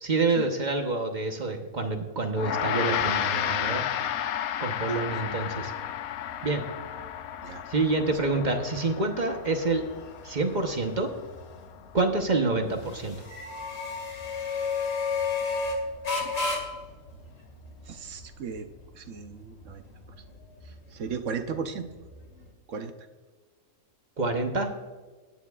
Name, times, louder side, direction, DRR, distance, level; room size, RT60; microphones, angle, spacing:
voice 1, 0.0-3.8 4.6-5.7 6.4-6.6 7.7-9.8 10.2-11.1 11.9-13.2 24.2-24.7, right 3 dB, 35° right, 4 dB, 1.0 m, -27 dB
Gong, 2.4-11.9, left 10 dB, 85° left, 1.1 m, -32 dB
sound 1, 5.3-22.5, left 4 dB, 65° left, 2.4 m, -35 dB
voice 2, 17.9-18.7 18.9-19.8 20.6-21.9 22.7-22.9, right 6 dB, 65° right, 8 dB, 1.1 m, -36 dB
17.5 x 9.2 x 2.4 m, 1.4 s
omnidirectional pair, 1.5 m